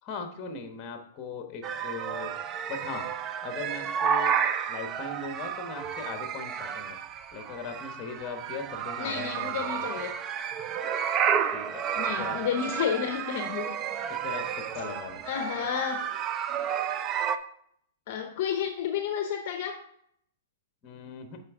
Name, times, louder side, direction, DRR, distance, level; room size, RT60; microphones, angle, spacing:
voice 1, 0.0-2.3 2.7-3.1 3.4-4.3 4.7-7.0 7.3-9.9 11.5-12.4 14.1-15.2 20.8-21.4, left 4 dB, 25° left, 5 dB, 1.1 m, -39 dB
sound 1, 1.6-17.4, right 8 dB, 25° right, 0.4 m, -31 dB
voice 2, 9.0-10.2 12.0-14.0 15.3-16.1 18.1-19.8, left 8 dB, 50° left, 6 dB, 0.6 m, -31 dB
7.4 x 5.1 x 3.6 m, 0.68 s
hypercardioid pair, 150°, 0 cm